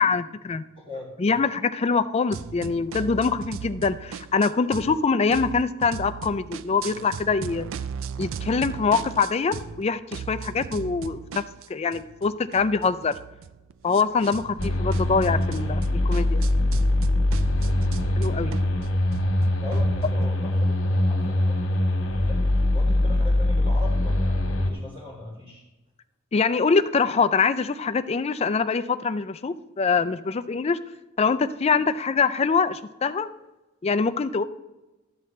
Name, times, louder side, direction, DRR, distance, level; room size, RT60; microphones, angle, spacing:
voice 1, 0.0-0.6 1.2-7.7 8.2-11.4 11.7-13.2 13.8-16.4 18.2-18.6 26.3-30.8 31.2-33.3 33.8-34.4, left 5 dB, 30° left, 12 dB, 0.4 m, -24 dB
voice 2, 0.8-1.4 19.6-22.4 22.7-25.6, left 2 dB, 25° right, -5 dB, 1.9 m, -40 dB
sound 1, 2.3-5.0 5.3-9.8 10.1-20.3, right 7 dB, 70° right, 0.4 m, -37 dB
sound 2, 14.6-24.7, left 1 dB, 90° left, 1.4 m, -23 dB
13.0 x 7.7 x 3.2 m, 1.1 s
head